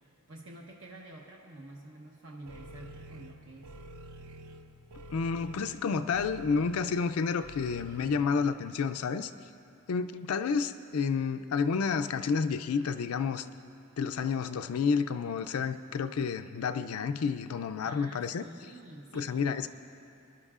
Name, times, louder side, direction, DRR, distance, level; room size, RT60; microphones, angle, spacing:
voice 1, 0.3-3.7 17.8-19.5, right 1 dB, 60° right, -1 dB, 1.0 m, -49 dB
sound 1, 2.5-8.2, right 2 dB, 80° right, 0.6 m, -48 dB
voice 2, 5.1-9.3 9.9-13.5 14.0-18.4 19.1-19.7, left 5 dB, 80° left, 9 dB, 0.4 m, -30 dB
24.0 x 12.0 x 2.4 m, 2.5 s
head